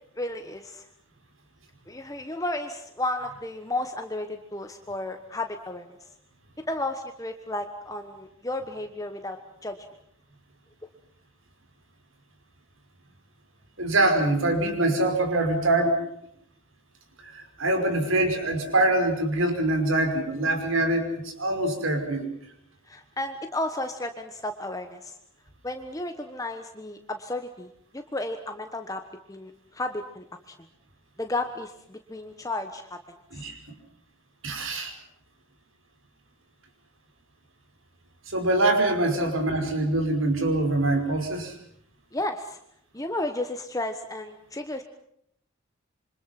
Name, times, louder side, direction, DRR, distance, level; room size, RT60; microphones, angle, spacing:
voice 1, 0.2-0.9 1.9-6.1 6.7-9.8 22.9-25.2 25.6-27.7 27.9-29.0 29.3-30.6 31.2-33.5 42.1-42.6 42.9-44.8, left 2 dB, 15° left, 6 dB, 1.2 m, -33 dB
voice 2, 13.8-16.0 17.2-22.3 33.3-33.6 34.4-34.9 38.3-41.5, right 2 dB, 70° right, 6 dB, 5.5 m, -24 dB
27.5 x 25.0 x 5.9 m, 0.72 s
head